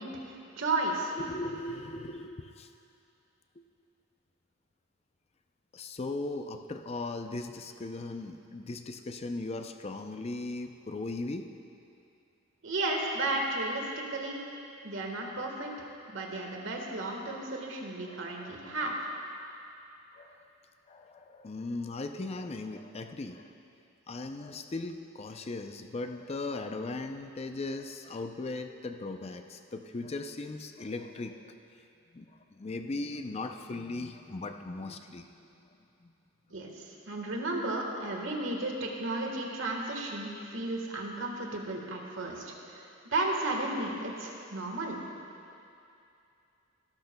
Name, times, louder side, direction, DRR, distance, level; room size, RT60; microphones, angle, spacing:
voice 1, 0.0-1.1 12.6-14.4 14.8-19.0 36.5-45.0, right 2 dB, 65° right, 0 dB, 1.5 m, -34 dB
voice 2, 1.2-2.7 5.7-11.5 18.1-18.7 19.4-19.5 20.1-20.4 20.9-23.5 24.1-31.5 32.1-35.3 35.6-35.7 36.0-36.1, left 2 dB, 30° left, 6 dB, 0.5 m, -38 dB
18.0 x 12.0 x 2.2 m, 2.6 s
head